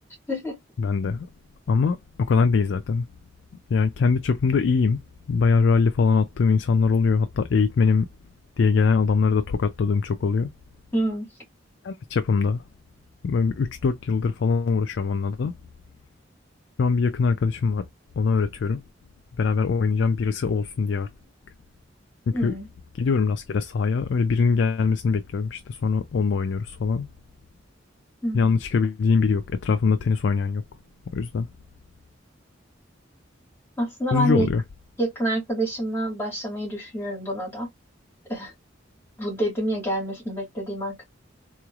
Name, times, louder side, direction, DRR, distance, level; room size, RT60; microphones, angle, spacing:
voice 1, 0.3-0.6 10.9-11.3 22.3-22.7 28.2-28.5 33.8-34.5 35.0-37.7 38.3-38.5 39.2-41.0, right 1 dB, 10° left, 2.0 m, -27 dB
voice 2, 0.8-1.3 1.7-3.1 3.7-5.0 5.3-8.1 8.6-10.5 11.8-12.6 13.2-15.5 16.8-17.9 18.2-18.8 19.4-21.1 22.3-22.5 22.9-27.1 28.3-30.6 31.1-31.5 34.1-34.6, left 5 dB, 65° left, 0.3 m, -22 dB
3.8 x 3.1 x 2.3 m
head